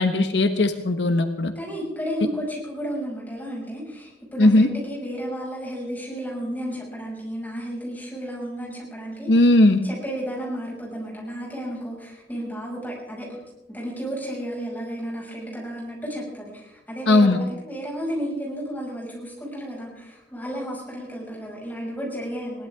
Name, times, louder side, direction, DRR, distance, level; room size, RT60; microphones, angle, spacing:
voice 1, 0.0-1.5 4.4-4.7 9.3-9.8 17.1-17.4, left 2 dB, 80° left, 7 dB, 1.2 m, -18 dB
voice 2, 1.6-9.3 9.8-13.4 13.7-22.7, equal, 10° left, -3 dB, 6.0 m, -32 dB
21.0 x 18.0 x 3.6 m, 0.94 s
head